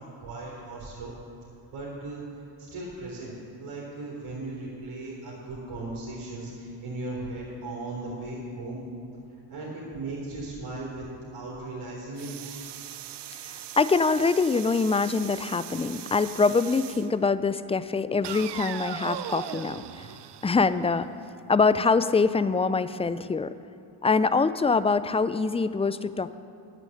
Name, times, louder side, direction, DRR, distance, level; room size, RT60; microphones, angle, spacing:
voice 1, 0.2-1.2 1.7-2.2 2.6-8.8 9.5-11.1 11.3-12.6, right 2 dB, 85° right, -5 dB, 3.5 m, -37 dB
sound 1, 12.2-17.1 18.2-21.2, right 11 dB, 60° right, 0.6 m, -39 dB
voice 2, 13.5-20.1 20.4-21.1 21.5-23.5 24.0-26.4, left 4 dB, 15° left, 14 dB, 0.3 m, -24 dB
9.7 x 9.2 x 7.8 m, 2.7 s
cardioid pair, 70°, 48 cm